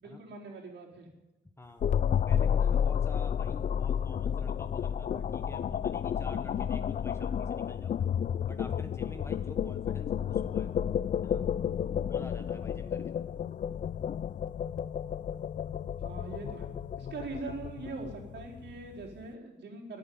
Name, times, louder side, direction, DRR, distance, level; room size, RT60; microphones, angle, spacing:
voice 1, 0.0-1.1 16.0-16.7 17.0-20.0, right 3 dB, 60° right, -1 dB, 4.4 m, -42 dB
Muffled Pipe Draining, 1.8-19.0, left 8 dB, 40° left, 0.4 m, -31 dB
voice 2, 2.3-8.0 8.5-10.7 11.2-11.5 12.1-13.2, left 1 dB, 15° left, 7 dB, 1.4 m, -47 dB
13.5 x 10.0 x 9.6 m, 1.0 s
cardioid pair, 90°, 20 cm